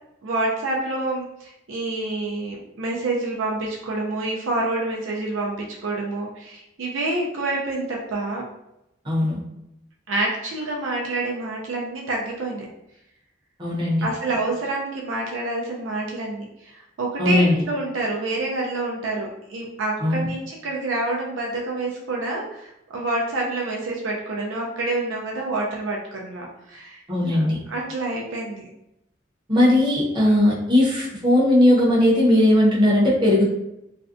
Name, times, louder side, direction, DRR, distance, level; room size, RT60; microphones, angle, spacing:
voice 1, 0.2-8.4 10.1-12.7 14.0-28.7 30.3-30.4, right 2 dB, 70° right, -2 dB, 0.4 m, -27 dB
voice 2, 9.0-9.4 13.6-14.1 17.2-17.5 20.0-20.3 27.1-27.6 29.5-33.5, left 1 dB, 25° right, -6 dB, 0.7 m, -18 dB
2.5 x 2.1 x 2.5 m, 0.85 s
head